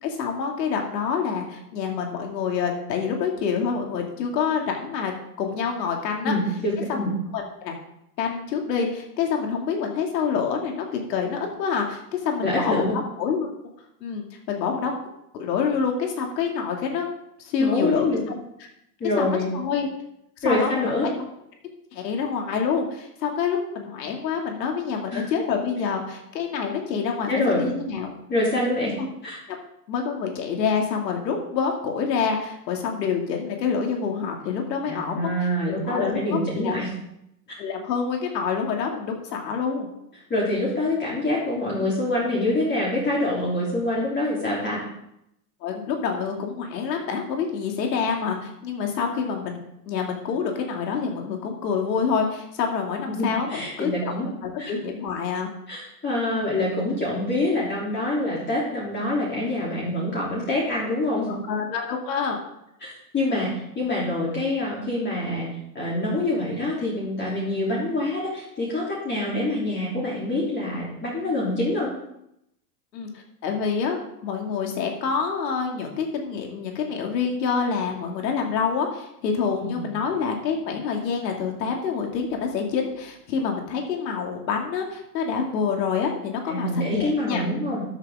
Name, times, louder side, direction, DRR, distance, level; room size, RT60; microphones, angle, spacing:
voice 1, 0.0-6.3 6.9-7.7 8.2-13.5 14.0-14.9 15.3-17.1 17.4-18.4 19.2-19.9 20.4-20.9 21.9-28.1 29.0-29.1 29.9-36.8 37.6-39.9 45.6-49.6 49.9-54.1 54.4-55.5 61.3-62.4 72.9-73.1 73.4-87.4, left 6 dB, 75° left, 2 dB, 2.7 m, -27 dB
voice 2, 6.2-7.1 12.4-12.9 17.6-18.2 19.0-19.5 20.4-21.1 25.1-25.3 27.3-27.6 28.3-28.9 29.2-29.4 34.9-36.9 37.5-37.6 40.3-44.8 53.1-54.3 54.6-54.7 55.7-61.3 62.8-65.5 65.7-71.9 79.6-79.9 86.5-87.8, left 1 dB, 20° left, -6 dB, 3.4 m, -25 dB
13.0 x 8.1 x 3.8 m, 0.81 s
hypercardioid pair, 120°, 49 cm